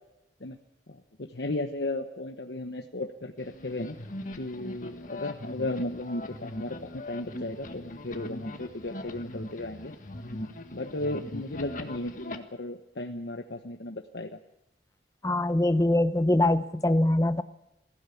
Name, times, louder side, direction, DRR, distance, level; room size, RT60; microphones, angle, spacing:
voice 1, 0.9-4.0 4.4-9.9 10.7-14.4, left 2 dB, 65° left, 4 dB, 1.1 m, -35 dB
sound 1, 3.4-12.4, left 1 dB, 45° left, 1.6 m, -40 dB
voice 2, 15.2-17.4, left 1 dB, 20° left, 13 dB, 0.7 m, -23 dB
21.5 x 15.5 x 8.5 m, 0.93 s
head